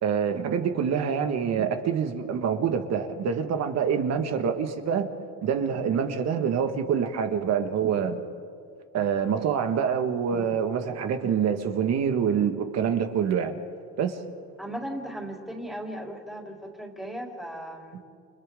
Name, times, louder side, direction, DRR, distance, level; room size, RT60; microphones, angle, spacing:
voice 1, 0.0-5.1 5.4-8.2 8.9-13.6 14.0-14.2, right 7 dB, 55° right, 6 dB, 2.0 m, -26 dB
voice 2, 14.6-18.0, right 1 dB, ahead, -1 dB, 3.8 m, -37 dB
30.0 x 29.5 x 4.0 m, 2.3 s
cardioid pair, 130°, 31 cm